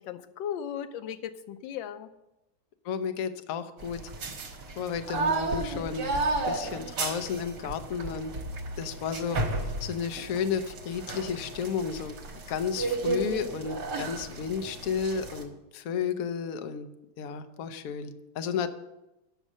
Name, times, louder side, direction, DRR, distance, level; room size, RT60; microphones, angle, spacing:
voice 1, 0.0-2.1 18.6-18.7, left 9 dB, 85° left, 11 dB, 1.4 m, -37 dB
voice 2, 2.8-4.0 4.8-6.2 6.5-8.3 8.8-12.2 12.5-16.9 17.2-18.7, left 6 dB, 60° left, 8 dB, 1.0 m, -32 dB
sound 1, 3.8-15.4, right 3 dB, 65° right, 1.9 m, -33 dB
8.2 x 6.4 x 7.3 m, 0.92 s
omnidirectional pair, 2.1 m